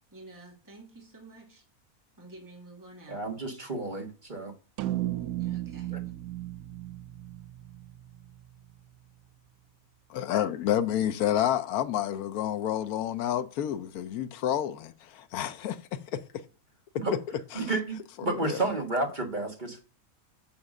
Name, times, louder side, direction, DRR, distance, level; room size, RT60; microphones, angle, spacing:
voice 1, 0.1-1.6 2.2-3.2 5.2-6.1, right 2 dB, 15° right, 2.3 m, -50 dB
voice 2, 3.1-4.5 17.0-17.2 17.5-19.9, right 2 dB, 35° right, 1.6 m, -31 dB
sound 1, 4.8-9.3, right 15 dB, 90° right, 1.1 m, -36 dB
voice 3, 10.1-16.0 17.1-17.2 17.5-17.7 18.3-18.6, left 11 dB, 85° left, 1.2 m, -29 dB
7.3 x 5.9 x 6.4 m
omnidirectional pair, 1.5 m